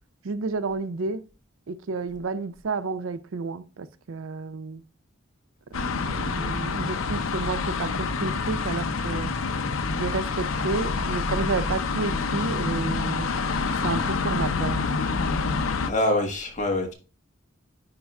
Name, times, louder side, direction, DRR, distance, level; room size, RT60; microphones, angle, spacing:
voice 1, 0.2-1.3 1.7-4.8 5.7-9.3 10.0-13.3 13.8-14.9, right 4 dB, 75° right, 0.5 m, -31 dB
sound 1, 5.7-15.9, left 4 dB, 80° left, 0.6 m, -27 dB
voice 2, 15.8-16.9, left 1 dB, 35° left, 1.5 m, -25 dB
10.5 x 4.6 x 2.3 m
head